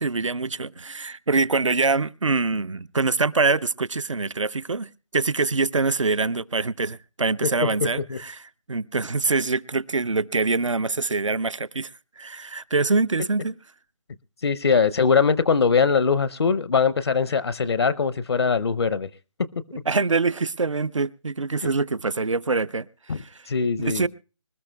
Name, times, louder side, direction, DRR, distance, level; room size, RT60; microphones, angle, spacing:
voice 1, 0.0-8.4 8.7-11.9 12.2-13.6 19.9-23.4 23.8-24.1, right 3 dB, 85° right, 0.6 m, -24 dB
voice 2, 14.4-19.1 23.1-24.1, left 5 dB, 55° left, 0.6 m, -22 dB
25.5 x 13.5 x 2.2 m
figure-of-eight pair, 155°, 16 cm